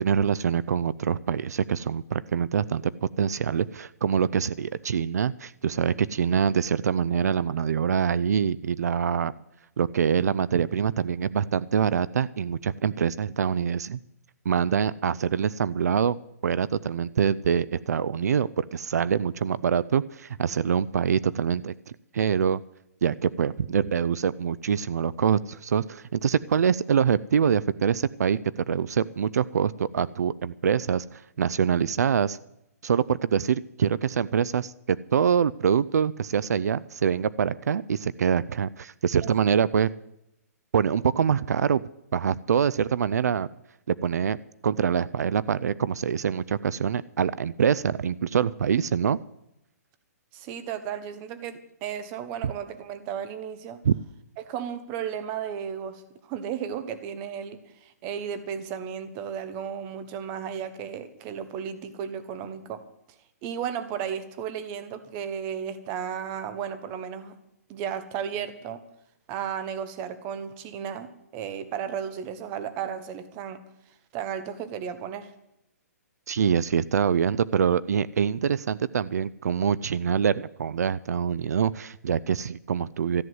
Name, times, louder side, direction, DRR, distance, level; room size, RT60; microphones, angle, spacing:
voice 1, 0.0-2.8 3.2-9.3 9.8-14.0 14.5-21.7 22.1-22.6 23.0-32.4 32.8-39.9 40.7-41.8 42.1-43.5 43.9-44.4 44.6-49.2 52.4-52.5 53.8-54.0 76.3-83.2, right 7 dB, 75° right, 19 dB, 0.4 m, -25 dB
voice 2, 50.3-53.8 54.4-62.8 63.4-67.3 67.7-68.8 69.3-73.6 74.1-75.3, right 8 dB, 20° right, 12 dB, 0.9 m, -34 dB
14.0 x 9.4 x 7.9 m, 0.84 s
hypercardioid pair, 170°, 9 cm